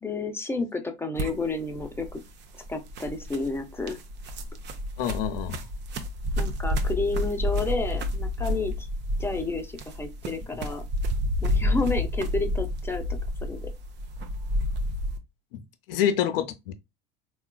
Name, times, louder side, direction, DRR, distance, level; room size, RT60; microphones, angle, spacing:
voice 1, 0.0-2.2 2.7-4.0 6.4-8.9 9.2-10.8 11.4-13.7, left 3 dB, 10° left, 0.6 m, -31 dB
sound 1, 1.1-15.2, left 1 dB, 35° right, 0.6 m, -30 dB
voice 2, 5.0-5.6 15.5-15.6 15.9-16.7, left 9 dB, 70° left, 0.6 m, -27 dB
3.6 x 2.3 x 2.2 m
hypercardioid pair, 80°, 30 cm